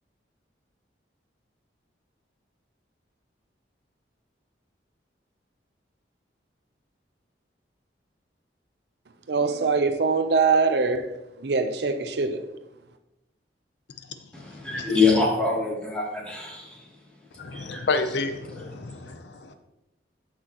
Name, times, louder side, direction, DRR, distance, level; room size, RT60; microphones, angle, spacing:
voice 1, 9.3-11.1 11.4-12.4, right 4 dB, 65° right, 0.6 m, -23 dB
voice 2, 14.3-16.8 17.5-17.9 18.5-18.7, left 4 dB, 5° left, 2.7 m, -25 dB
voice 3, 17.4-19.6, left 3 dB, 70° left, 0.7 m, -30 dB
14.0 x 6.1 x 3.0 m
head